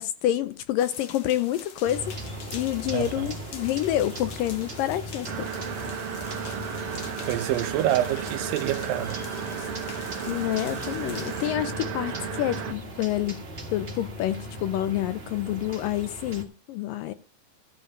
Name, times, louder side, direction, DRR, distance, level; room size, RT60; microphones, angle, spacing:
voice 1, 0.0-2.1 2.5-5.5 9.6-9.7 10.3-13.4 13.7-17.1, left 13 dB, 80° left, 2.4 m, -28 dB
sound 1, 0.8-11.5, left 7 dB, 60° left, 1.4 m, -45 dB
sound 2, 1.8-16.4, right 1 dB, 25° right, 1.3 m, -39 dB
voice 2, 2.9-3.4 7.3-9.2, right 13 dB, 80° right, 2.4 m, -27 dB
sound 3, 5.2-12.7, right 7 dB, 55° right, 1.7 m, -34 dB
14.0 x 5.3 x 6.6 m
omnidirectional pair, 4.1 m